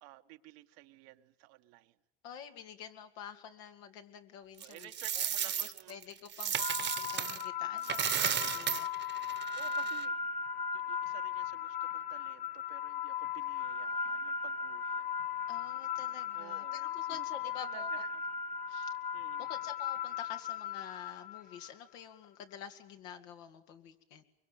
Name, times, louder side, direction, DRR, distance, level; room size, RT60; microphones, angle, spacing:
voice 1, 0.0-1.9 4.6-6.0 9.5-10.2 10.7-15.1 16.3-17.2 17.6-18.2 18.7-19.5, right 18 dB, 90° right, 7 dB, 1.5 m, -54 dB
voice 2, 2.2-5.3 5.6-9.4 9.6-9.9 15.5-18.1 19.4-24.2, left 8 dB, 85° left, 6 dB, 2.6 m, -49 dB
Coin (dropping), 4.6-7.4 7.8-10.0, right 9 dB, 35° right, 1.1 m, -34 dB
sound 1, 6.6-21.7, left 7 dB, 25° left, 1.3 m, -37 dB
23.5 x 23.5 x 9.5 m, 0.75 s
supercardioid pair, 95°, 32 cm